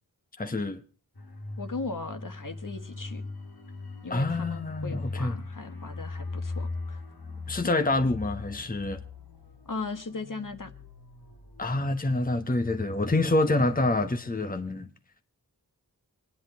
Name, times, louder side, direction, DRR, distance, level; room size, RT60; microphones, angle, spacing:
voice 1, 0.4-0.8 4.1-5.3 7.5-9.0 11.6-14.9, left 2 dB, 25° left, 1.1 m, -27 dB
sound 1, 1.1-13.5 13.8-14.0, left 3 dB, 80° left, 2.5 m, -40 dB
voice 2, 1.6-3.2 4.0-7.0 9.7-10.7, left 3 dB, 55° left, 1.6 m, -38 dB
25.5 x 10.0 x 4.6 m
wide cardioid pair, 65°, 37 cm